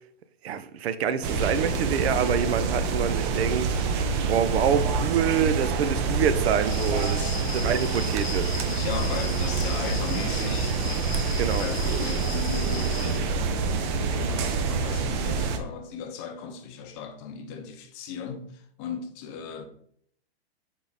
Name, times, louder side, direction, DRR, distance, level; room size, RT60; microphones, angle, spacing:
voice 1, 0.4-3.7 4.3-8.6 11.4-11.7, right 7 dB, 80° right, 0.6 m, -26 dB
sound 1, 1.2-15.6, right 4 dB, 30° right, 0.4 m, -27 dB
sound 2, 6.6-13.2, left 3 dB, 80° left, 0.9 m, -37 dB
voice 2, 7.1-7.4 8.7-10.8 11.6-13.5 13.9-19.6, left 6 dB, 30° left, 0.6 m, -37 dB
3.6 x 3.6 x 3.9 m
hypercardioid pair, 140°, 31 cm